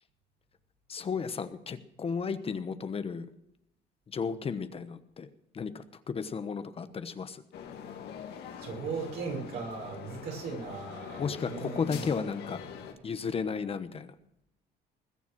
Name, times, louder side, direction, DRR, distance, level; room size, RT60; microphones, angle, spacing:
voice 1, 0.9-3.3 4.1-5.3 5.5-7.4 11.2-12.6 13.0-14.1, left 5 dB, 35° left, 11 dB, 1.1 m, -34 dB
sound 1, 7.5-12.9, left 8 dB, 75° left, 2.4 m, -44 dB
voice 2, 8.6-12.1, right 5 dB, 75° right, 1 dB, 5.8 m, -38 dB
20.5 x 7.1 x 6.2 m, 0.83 s
cardioid pair, 110°, 17 cm